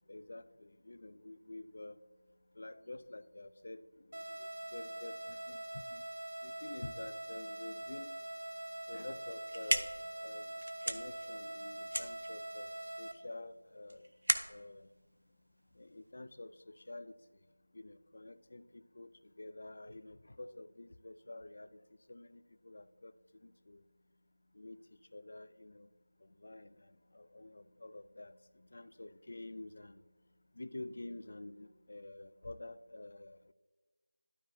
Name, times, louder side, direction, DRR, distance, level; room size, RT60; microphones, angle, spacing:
voice 1, 0.1-2.0 2.5-6.0 6.4-8.2 8.9-10.5 10.8-14.1 14.5-14.9 15.7-17.1 17.7-21.8 22.1-23.8 24.5-24.9 25.1-25.9 26.2-30.0 30.5-33.5, left 2 dB, 55° left, 14 dB, 0.4 m, -49 dB
sound 1, 4.1-13.1, right 1 dB, 60° right, 1.0 m, -44 dB
sound 2, 9.2-16.1, right 1 dB, 80° right, 0.6 m, -38 dB
12.0 x 4.8 x 2.7 m, 1.3 s
figure-of-eight pair, 175°, 0 cm